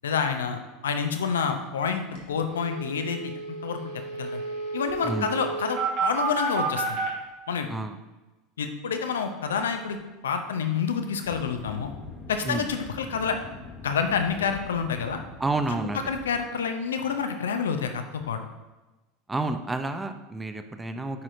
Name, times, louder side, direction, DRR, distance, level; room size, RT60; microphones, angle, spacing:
voice 1, 0.0-3.3 3.6-3.8 4.2-4.4 4.7-7.0 7.5-7.7 8.6-10.0 10.2-11.9 12.3-13.4 13.8-15.2 16.1-18.4, left 6 dB, 85° left, 6 dB, 0.5 m, -28 dB
sound 1, 1.8-1.9 2.2-2.3 2.5-7.1, right 3 dB, 70° right, 1.5 m, -31 dB
sound 2, 11.2-16.4, left 3 dB, 25° left, 1.0 m, -44 dB
voice 2, 15.4-16.0 19.3-21.2, right 2 dB, 15° right, 8 dB, 0.5 m, -30 dB
9.3 x 4.2 x 2.6 m, 1.1 s
hypercardioid pair, 85°, 0 cm